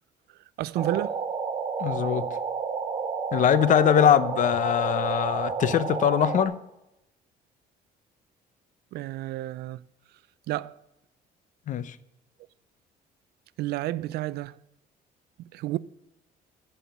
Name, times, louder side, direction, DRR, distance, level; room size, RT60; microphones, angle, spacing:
voice 1, 0.6-1.2 4.0-4.1 8.9-9.8 10.5-10.8 13.6-14.6 15.4-15.8, right 15 dB, 75° right, 0.4 m, -31 dB
sound 1, 0.7-6.4, right 5 dB, 30° right, 1.5 m, -30 dB
voice 2, 1.8-2.4 3.3-6.6 11.7-12.0, left 9 dB, 50° left, 0.6 m, -22 dB
10.0 x 5.6 x 7.1 m
cardioid pair, 110°, 17 cm